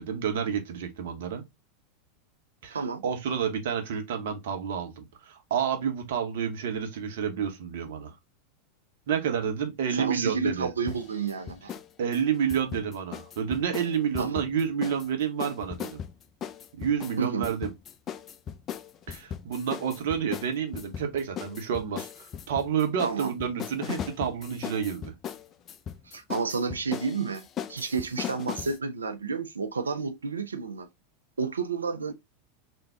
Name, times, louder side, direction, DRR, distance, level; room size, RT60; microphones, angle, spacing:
voice 1, 0.0-1.4 2.6-8.1 9.1-10.7 12.0-16.0 16.8-17.7 19.1-22.1 22.5-25.1, right 7 dB, 65° right, 1.0 m, -29 dB
voice 2, 9.9-11.8 14.2-14.4 17.2-17.5 23.0-23.4 26.1-30.9 31.4-32.1, right 5 dB, 85° right, 0.6 m, -31 dB
sound 1, 10.9-11.9 12.1-15.1 15.4-28.8, left 9 dB, 35° left, 0.4 m, -38 dB
3.6 x 2.5 x 3.3 m
hypercardioid pair, 90°, 0 cm